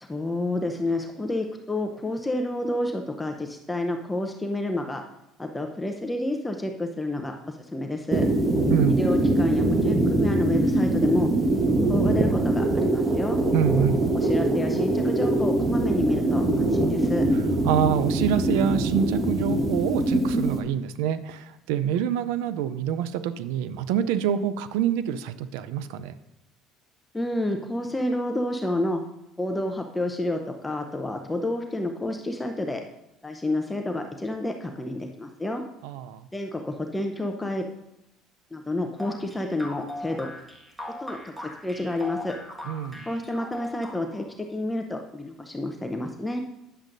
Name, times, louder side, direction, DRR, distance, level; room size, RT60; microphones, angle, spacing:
voice 1, 0.0-5.0 5.4-8.2 8.9-11.3 11.9-13.4 14.1-17.2 27.1-29.0 29.4-32.8 33.2-35.6 36.3-37.7 38.5-40.3 41.0-42.4 43.1-44.2 44.5-46.4, left 1 dB, 10° left, 3 dB, 0.7 m, -29 dB
sound 1, 8.1-20.6, right 2 dB, 30° right, 1.1 m, -23 dB
voice 2, 13.5-14.0 17.6-26.1 35.8-36.3 42.6-43.0, right 9 dB, 85° right, 13 dB, 0.5 m, -26 dB
sound 2, 39.0-44.3, left 1 dB, 10° right, 1.6 m, -39 dB
9.9 x 7.2 x 2.6 m, 0.88 s
supercardioid pair, 90°, 0 cm